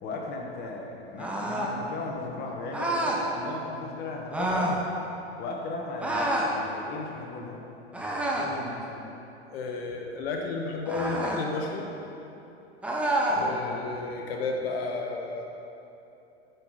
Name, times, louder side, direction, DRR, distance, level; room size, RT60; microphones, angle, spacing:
voice 1, 0.0-4.7 5.4-7.6 8.3-9.0 13.3-13.8, left 3 dB, 30° left, 0 dB, 1.2 m, -37 dB
sound 1, 1.2-1.8 2.7-3.2 4.3-4.8 6.0-6.5 7.9-8.6 10.8-11.4 12.8-13.4, right 1 dB, 5° right, 0.8 m, -28 dB
voice 2, 9.5-11.9 13.4-15.4, left 3 dB, 65° left, 1 dB, 1.0 m, -32 dB
9.2 x 5.9 x 4.9 m, 3.0 s
hypercardioid pair, 125°, 33 cm